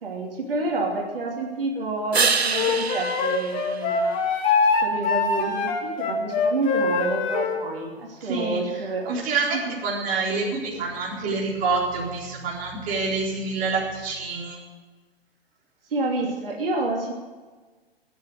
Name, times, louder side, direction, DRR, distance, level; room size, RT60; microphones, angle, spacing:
voice 1, 0.0-4.2 4.8-9.1 9.5-9.6 15.9-17.1, right 2 dB, 60° right, -1 dB, 2.9 m, -29 dB
sound 1, 2.1-4.7 10.4-14.4, right 5 dB, 80° right, 1.0 m, -30 dB
Wind instrument woodwind instrument, 2.5-7.6, left 4 dB, 25° left, 2.1 m, -23 dB
voice 2, 8.2-8.6 9.1-14.6, right 4 dB, 25° right, -3 dB, 4.1 m, -27 dB
16.5 x 9.7 x 7.9 m, 1.4 s
figure-of-eight pair, 115°, 32 cm